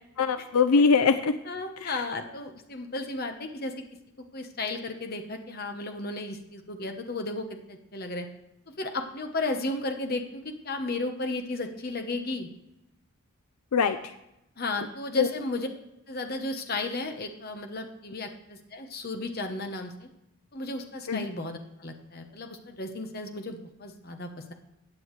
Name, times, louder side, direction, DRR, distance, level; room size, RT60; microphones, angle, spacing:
voice 1, 0.2-1.3 1.8-2.0 13.7-14.1 15.2-15.3 21.1-21.3, left 5 dB, 80° left, 11 dB, 0.5 m, -22 dB
voice 2, 1.5-3.7 4.3-8.3 8.8-12.5 14.6-15.7 16.1-20.1 20.5-24.5, left 2 dB, 45° left, 5 dB, 1.0 m, -34 dB
15.5 x 8.8 x 3.2 m, 0.88 s
head